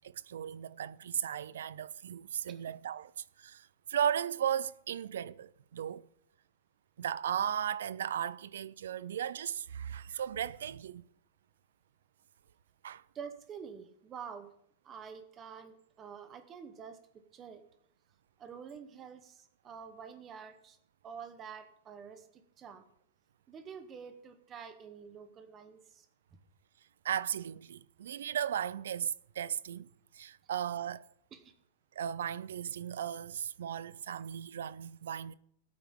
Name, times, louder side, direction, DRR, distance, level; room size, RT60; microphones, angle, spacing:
voice 1, 0.3-3.1 3.4-3.6 3.9-6.1 7.0-11.0 12.8-13.0 27.0-29.9 30.1-31.0 32.0-35.3, right 9 dB, 85° right, 0.5 m, -36 dB
voice 2, 13.1-14.5 14.8-17.6 18.4-20.8 21.0-22.8 23.5-26.1 31.3-31.5, right 7 dB, 15° right, 1.0 m, -48 dB
19.5 x 8.8 x 3.7 m
supercardioid pair, 175°, 0 cm